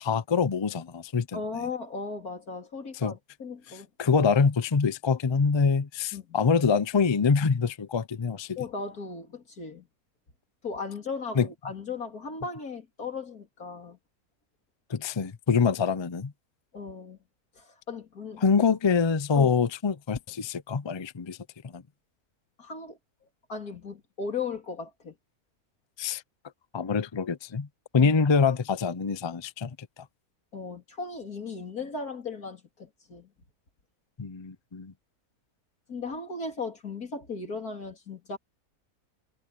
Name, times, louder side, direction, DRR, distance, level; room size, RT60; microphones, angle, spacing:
voice 1, 0.0-1.4 3.0-3.1 4.0-8.6 11.3-11.5 14.9-16.3 18.4-21.4 21.7-21.8 26.0-26.2 26.7-27.7 27.9-29.7 34.2-34.9, left 5 dB, 40° left, 0.3 m, -25 dB
voice 2, 1.3-4.1 6.1-6.4 8.6-9.9 10.6-14.0 16.7-17.2 17.6-18.4 19.3-19.6 22.6-23.0 23.5-25.1 28.0-28.1 30.5-33.3 35.9-38.4, left 4 dB, 80° left, 3.9 m, -37 dB
omnidirectional pair, 1.6 m